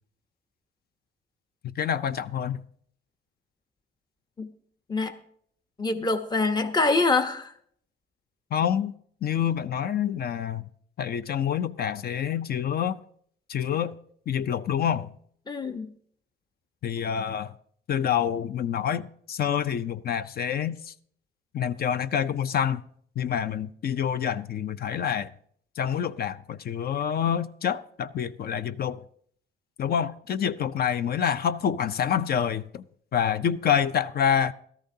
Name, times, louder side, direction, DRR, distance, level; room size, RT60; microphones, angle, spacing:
voice 1, 1.8-2.6 8.5-8.9 9.2-10.7 11.0-13.0 13.5-14.0 14.3-15.1 16.8-17.5 17.9-20.9 21.5-22.8 23.2-25.3 25.8-29.0 29.8-32.8 33.1-34.5, left 8 dB, 50° left, 0.5 m, -27 dB
voice 2, 5.8-7.5 15.5-15.9, left 3 dB, 20° left, 0.9 m, -25 dB
17.0 x 13.5 x 2.7 m
cardioid pair, 90°, 20 cm